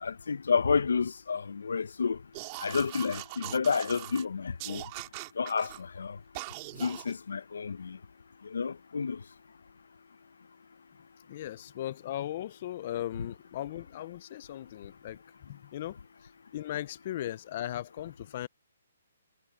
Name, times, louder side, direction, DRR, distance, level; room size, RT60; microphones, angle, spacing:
voice 1, 0.0-2.2 2.6-4.8 5.4-6.2 6.8-8.0 8.4-9.2, left 5 dB, 80° left, 0.8 m, -30 dB
sound 1, 2.3-4.2 4.6-5.8 6.3-7.1, right 25 dB, 25° right, 2.2 m, -41 dB
voice 2, 11.3-15.2 15.5-16.0 16.5-18.5, left 12 dB, 40° left, 0.7 m, -37 dB
hypercardioid pair, 160°, 0 cm